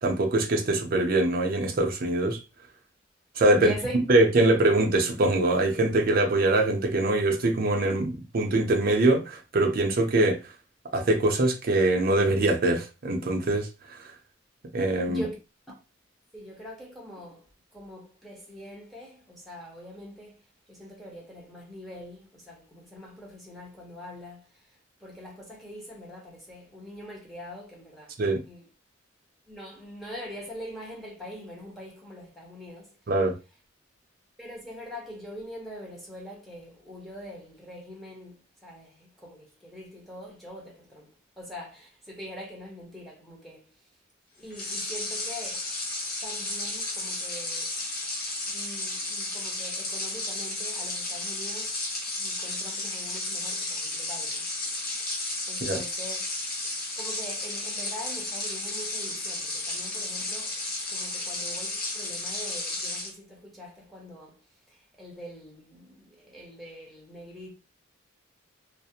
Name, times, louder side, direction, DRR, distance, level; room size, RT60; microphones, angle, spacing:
voice 1, 0.0-2.4 3.4-3.7 4.1-10.4 10.9-13.7 14.7-15.2 28.2-28.4 33.1-33.3 55.6-55.8, right 2 dB, 45° right, 0.5 m, -23 dB
voice 2, 3.5-4.0 15.0-15.4 16.3-17.4 17.7-20.4 20.7-24.4 25.0-28.1 28.4-28.6 29.5-32.9 34.4-38.4 38.6-38.9 39.2-41.1 41.4-43.6 44.4-45.6 46.2-47.7 48.5-51.7 52.2-54.4 55.5-56.2 57.0-60.5 60.9-64.3 65.0-65.9 66.2-67.5, equal, ahead, 0.6 m, -43 dB
sound 1, 44.5-63.1, left 2 dB, 50° left, 0.8 m, -33 dB
2.4 x 2.0 x 2.7 m
head